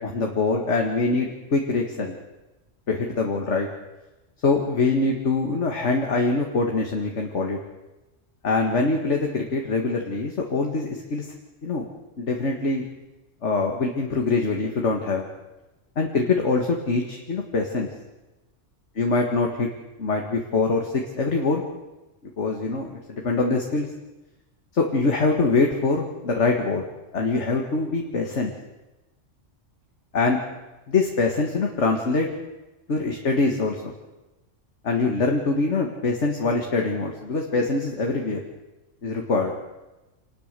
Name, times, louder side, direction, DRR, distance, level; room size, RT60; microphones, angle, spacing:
voice 1, 0.0-2.2 2.9-3.7 4.4-7.6 8.4-11.3 11.6-11.9 12.2-12.8 13.4-15.3 16.0-17.9 19.0-19.7 20.0-21.6 22.4-23.9 24.7-26.9 27.1-28.5 30.1-30.4 30.9-32.3 32.9-33.9 34.8-38.4 39.0-39.5, left 3 dB, 65° left, 1 dB, 2.1 m, -24 dB
26.5 x 19.5 x 6.8 m, 1.1 s
omnidirectional pair, 1.3 m